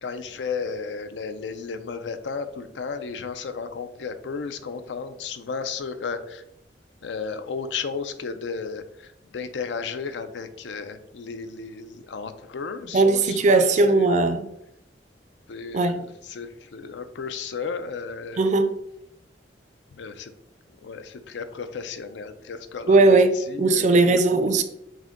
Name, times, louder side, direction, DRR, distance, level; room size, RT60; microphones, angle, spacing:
voice 1, 0.0-6.4 7.0-14.1 15.5-18.4 20.0-20.3 20.7-24.2 24.5-24.6, left 5 dB, 85° left, 0.5 m, -34 dB
voice 2, 12.9-14.5 15.7-16.0 18.4-18.7 22.9-24.6, right 3 dB, 40° right, 0.4 m, -18 dB
6.1 x 2.2 x 3.6 m
head